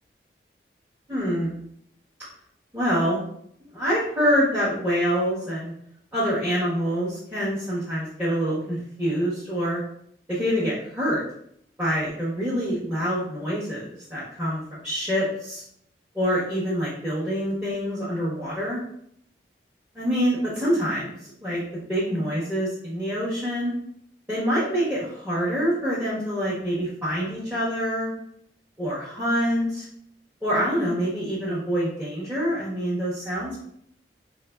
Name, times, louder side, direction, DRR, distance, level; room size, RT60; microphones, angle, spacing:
voice 1, 1.1-1.5 2.7-3.2 3.6-5.7 6.1-9.8 10.3-11.2 11.8-15.6 16.1-18.8 19.9-21.2 21.4-21.6 21.9-23.7 24.3-28.1 28.8-29.9 30.4-33.6, equal, 10° right, -11 dB, 0.9 m, -26 dB
4.7 x 3.0 x 2.3 m, 0.70 s
head